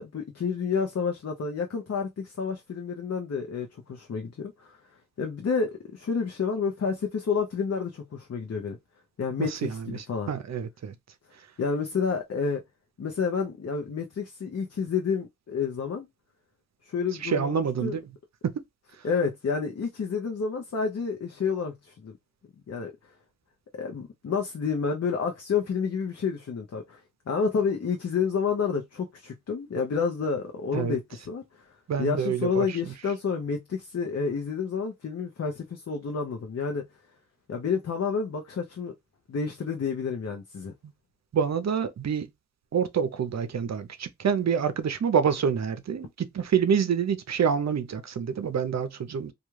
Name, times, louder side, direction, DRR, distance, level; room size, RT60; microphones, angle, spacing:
voice 1, 0.0-4.8 5.2-8.8 9.2-10.3 11.6-12.6 13.0-16.1 16.9-18.0 19.0-22.2 22.7-22.9 23.7-31.4 32.0-36.8 37.5-38.9 39.3-40.7, left 5 dB, 50° left, 0.6 m, -29 dB
voice 2, 9.4-10.9 17.2-18.0 18.4-18.5 30.7-31.0 31.9-32.9 41.3-42.3 42.7-49.3, right 7 dB, 55° right, 0.5 m, -27 dB
2.3 x 2.3 x 3.0 m
cardioid pair, 45°, 32 cm